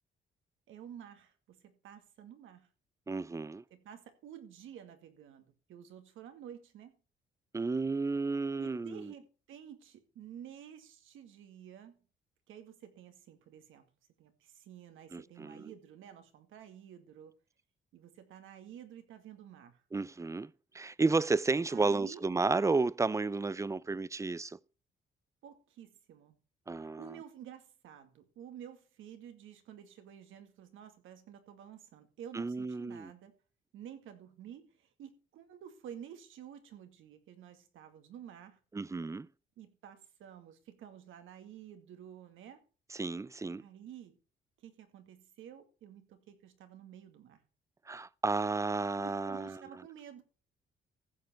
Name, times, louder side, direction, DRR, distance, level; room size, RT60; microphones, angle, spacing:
voice 1, 0.7-2.7 3.7-6.9 8.6-12.0 12.5-13.8 14.2-17.3 17.9-19.8 21.7-22.2 25.4-26.4 26.8-33.3 33.7-38.6 39.6-42.6 43.6-44.2 44.6-47.4 49.0-50.2, right 9 dB, 85° right, 2.2 m, -51 dB
voice 2, 3.1-3.6 7.5-9.1 15.1-15.7 19.9-24.6 26.7-27.1 32.3-33.1 38.7-39.3 42.9-43.6 47.9-49.6, right 3 dB, 15° right, 0.5 m, -32 dB
15.0 x 7.6 x 4.4 m
cardioid pair, 90°, 20 cm